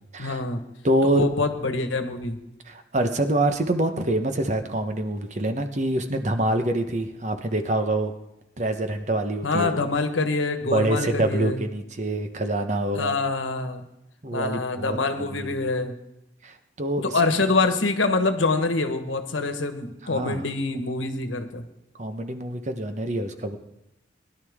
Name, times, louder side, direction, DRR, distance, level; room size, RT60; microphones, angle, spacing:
voice 1, 0.2-0.6 1.0-2.4 9.4-11.6 12.9-13.8 14.3-16.0 17.0-21.6, left 3 dB, 90° left, 8 dB, 1.3 m, -25 dB
voice 2, 0.8-1.3 2.6-8.1 8.6-9.8 10.7-13.1 14.2-15.6 16.4-17.2 20.1-20.4 22.0-23.6, right 1 dB, 40° right, 7 dB, 1.0 m, -26 dB
20.5 x 11.5 x 3.6 m, 0.88 s
head